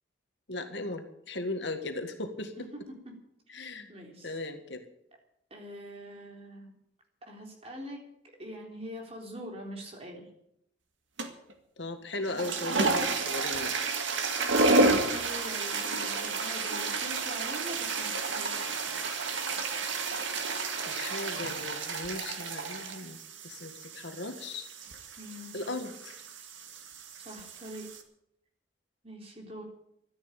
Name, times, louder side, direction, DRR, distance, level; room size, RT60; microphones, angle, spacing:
voice 1, 0.5-2.7 3.5-3.9 4.2-4.9 11.8-13.8 20.9-23.2 23.4-24.6 25.5-26.2, left 2 dB, 70° left, 7 dB, 1.8 m, -37 dB
voice 2, 3.5-4.3 5.5-6.7 7.3-8.0 8.4-10.3 14.9-18.8 25.2-25.5 27.2-27.9 29.0-29.6, equal, 30° right, 1 dB, 3.7 m, -44 dB
sound 1, 11.2-11.5 12.2-28.0, right 3 dB, 80° right, 2.0 m, -31 dB
13.0 x 10.0 x 9.1 m, 0.76 s
head